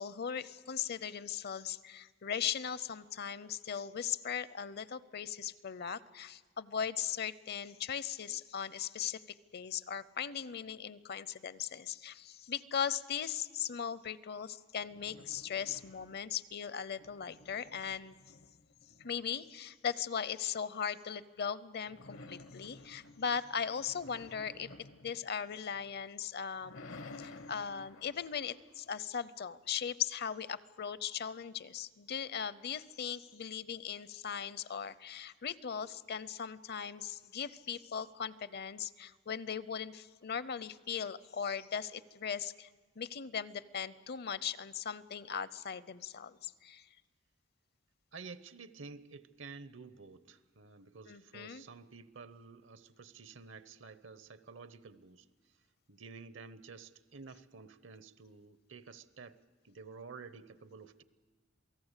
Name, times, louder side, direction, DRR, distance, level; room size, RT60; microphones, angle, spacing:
voice 1, 0.0-9.2 9.5-18.2 19.0-24.7 25.0-26.9 27.2-42.7 43.0-46.9 51.1-51.6, left 7 dB, 55° left, 17 dB, 0.6 m, -38 dB
sound 1, 14.8-16.4 16.8-19.5 21.9-26.0 26.4-29.5, left 2 dB, 80° left, 1.1 m, -54 dB
voice 2, 48.1-55.2 55.9-61.0, right 4 dB, 70° right, 14 dB, 0.9 m, -51 dB
27.5 x 18.0 x 8.2 m, 1.4 s
head